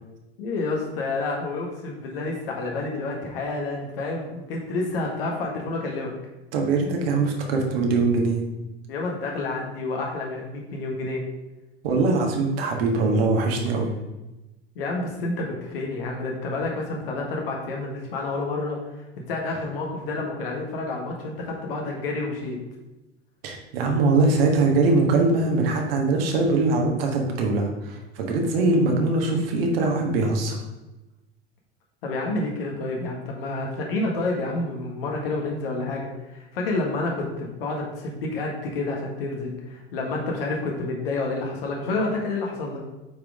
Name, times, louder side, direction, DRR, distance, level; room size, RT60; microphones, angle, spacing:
voice 1, 0.4-6.1 8.9-11.2 14.8-22.6 32.0-42.9, left 2 dB, 60° left, 0 dB, 1.6 m, -29 dB
voice 2, 6.5-8.4 11.8-13.9 23.4-30.6, right 3 dB, 60° right, 1 dB, 1.7 m, -22 dB
8.8 x 5.1 x 3.6 m, 1.0 s
figure-of-eight pair, 75°, 33 cm